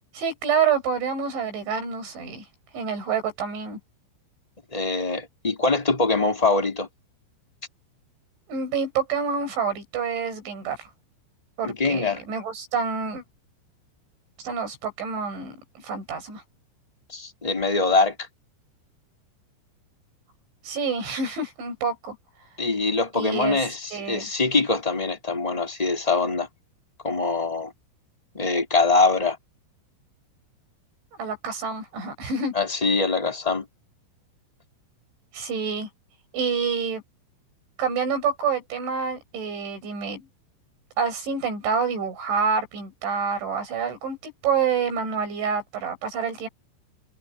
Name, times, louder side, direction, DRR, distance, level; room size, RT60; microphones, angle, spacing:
voice 1, 0.1-2.5 2.7-3.8 8.5-10.9 11.6-13.2 14.4-15.6 15.8-16.4 20.6-22.2 23.1-23.6 23.9-24.3 31.1-32.5 35.3-35.9 36.3-37.0 37.8-40.3 41.0-46.5, right 6 dB, 70° right, 9.5 m, -27 dB
voice 2, 4.7-6.9 11.6-12.2 17.1-18.1 22.6-26.5 27.0-27.7 28.3-29.4 32.5-33.6, left 3 dB, 10° left, 4.3 m, -23 dB
omnidirectional pair, 5.6 m